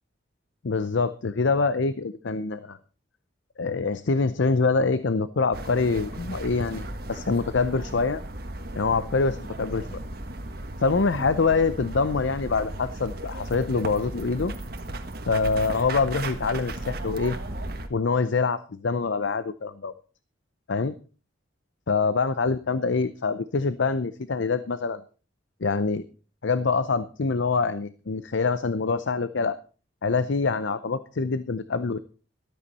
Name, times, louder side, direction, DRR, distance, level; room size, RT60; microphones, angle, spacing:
voice 1, 0.6-2.8 3.6-8.2 8.8-10.0 10.8-14.5 15.3-17.4 17.9-19.9 20.7-20.9 21.9-25.0 25.6-26.0 26.4-29.6 30.0-32.0, left 4 dB, 70° left, 14 dB, 0.6 m, -25 dB
sound 1, 5.5-17.9, right 1 dB, 50° right, 1.5 m, -36 dB
13.0 x 13.0 x 4.2 m, 0.36 s
head